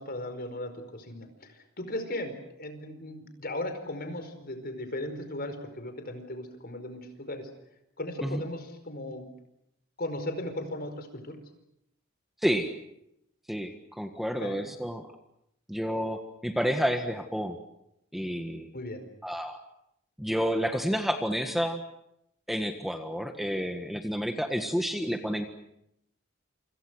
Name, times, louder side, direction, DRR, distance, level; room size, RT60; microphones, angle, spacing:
voice 1, 0.0-7.5 8.0-9.3 10.0-11.4 14.4-14.6 18.7-19.0, left 1 dB, 50° left, 8 dB, 4.9 m, -37 dB
voice 2, 13.5-15.0 15.7-17.6 18.1-18.7 19.2-19.6 20.2-21.8 22.5-25.5, equal, ahead, 6 dB, 1.6 m, -30 dB
28.0 x 27.0 x 6.4 m, 0.80 s
head